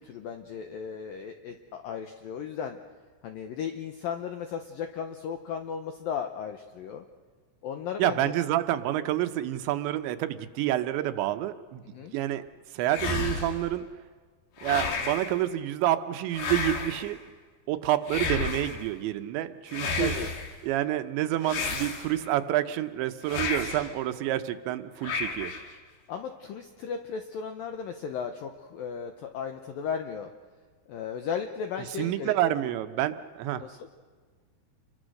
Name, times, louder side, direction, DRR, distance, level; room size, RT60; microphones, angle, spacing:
voice 1, 0.0-2.8 3.2-7.1 7.6-8.2 11.8-12.1 19.9-20.3 26.1-30.3 30.9-32.6 33.6-33.9, left 7 dB, 80° left, 6 dB, 2.1 m, -35 dB
voice 2, 8.0-11.8 12.1-12.4 12.7-13.9 14.6-17.2 17.7-20.2 20.6-25.5 32.0-33.6, right 13 dB, 80° right, 10 dB, 3.0 m, -28 dB
sound 1, 12.9-13.7 14.6-15.4 16.3-17.1 18.1-18.8 19.7-20.5 21.4-22.3 23.2-23.9 25.0-25.7, left 4 dB, 60° left, 4.1 m, -32 dB
29.0 x 23.0 x 6.5 m, 1.6 s
omnidirectional pair, 5.5 m